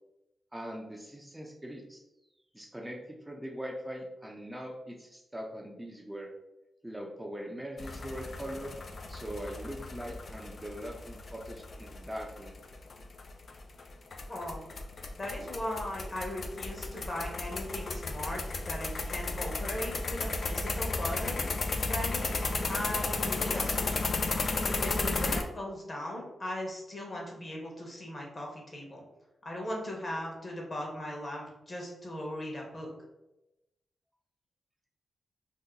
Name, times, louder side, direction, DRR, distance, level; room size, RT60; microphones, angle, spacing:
voice 1, 0.5-2.0 2.5-6.3 6.8-8.7 9.1-12.6, equal, 15° right, -1 dB, 0.5 m, -41 dB
sound 1, 7.8-25.4, left 3 dB, 60° left, 0.3 m, -34 dB
voice 2, 14.3-14.6 15.2-21.5 21.8-22.4 22.6-24.1 24.7-29.0 29.4-32.9, left 1 dB, 40° left, -1 dB, 1.1 m, -38 dB
2.8 x 2.1 x 3.8 m, 0.94 s
cardioid pair, 55°, 0 cm